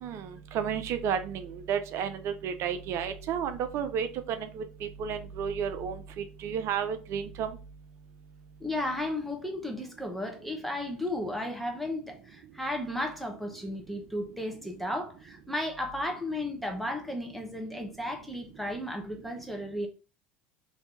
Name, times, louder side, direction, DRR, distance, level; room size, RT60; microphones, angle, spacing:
voice 1, 0.0-6.0 6.4-7.6, right 7 dB, 50° right, 0.4 m, -32 dB
voice 2, 8.6-19.9, left 1 dB, ahead, 0.8 m, -34 dB
2.7 x 2.6 x 3.4 m
hypercardioid pair, 80°, 6 cm